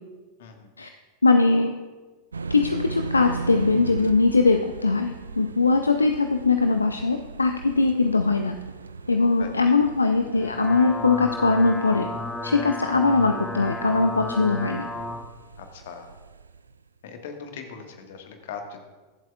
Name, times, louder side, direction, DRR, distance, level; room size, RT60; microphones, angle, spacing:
voice 1, 1.2-1.7 2.5-8.5 9.1-12.1 12.4-14.9, left 3 dB, 80° left, 6 dB, 0.5 m, -21 dB
sound 1, 2.3-16.8, right 4 dB, 75° right, 0.4 m, -39 dB
sound 2, 10.3-15.2, left 2 dB, 15° left, 1.0 m, -33 dB
voice 2, 15.6-16.1 17.0-18.8, left 6 dB, 55° left, 5 dB, 1.5 m, -40 dB
23.0 x 7.6 x 2.3 m, 1.3 s
figure-of-eight pair, 90°, 0 cm